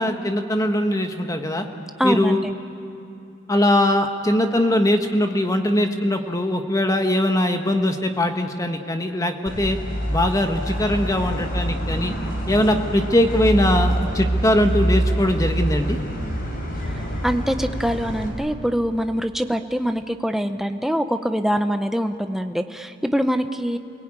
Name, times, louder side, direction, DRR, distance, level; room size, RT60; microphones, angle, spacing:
voice 1, 0.0-1.7 2.0-2.4 3.5-9.8 10.1-12.1 12.5-16.0, left 1 dB, 15° left, 5 dB, 1.3 m, -21 dB
voice 2, 2.0-2.5 17.2-23.8, equal, ahead, 7 dB, 0.7 m, -24 dB
sound 1, 9.5-18.3, right 1 dB, 45° left, 4.4 m, -25 dB
29.5 x 18.5 x 8.8 m, 2.7 s
head